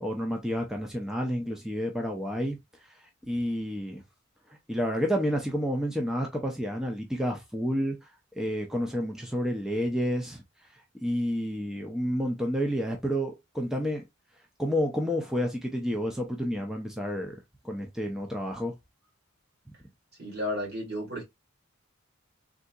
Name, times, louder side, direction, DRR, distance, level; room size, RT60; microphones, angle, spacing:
voice 1, 0.0-4.0 4.5-8.1 8.4-10.4 10.7-14.0 14.6-17.4 17.6-18.8, equal, ahead, 0.4 m, -30 dB
voice 2, 20.2-21.2, left 1 dB, 50° right, 1.8 m, -33 dB
3.7 x 2.7 x 2.2 m
head